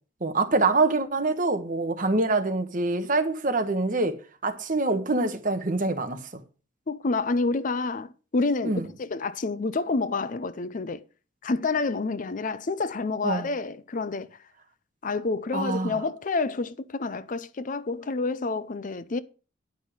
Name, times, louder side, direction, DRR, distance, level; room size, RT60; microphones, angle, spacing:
voice 1, 0.2-4.2 4.4-6.3 8.6-8.9 13.2-13.5 15.5-16.0, right 3 dB, 40° right, 1.2 m, -25 dB
voice 2, 6.9-11.0 11.4-14.3 15.0-19.2, left 3 dB, 40° left, 0.5 m, -28 dB
10.0 x 5.5 x 6.1 m
head